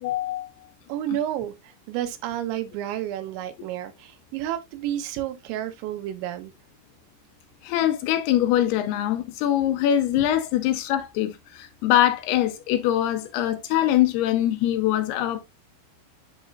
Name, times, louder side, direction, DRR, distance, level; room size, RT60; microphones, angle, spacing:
voice 1, 0.0-0.5 7.6-15.4, left 12 dB, 80° left, 2.4 m, -23 dB
voice 2, 0.9-6.5 10.2-10.3, right 12 dB, 90° right, 3.3 m, -31 dB
11.0 x 4.2 x 2.3 m
omnidirectional pair, 5.1 m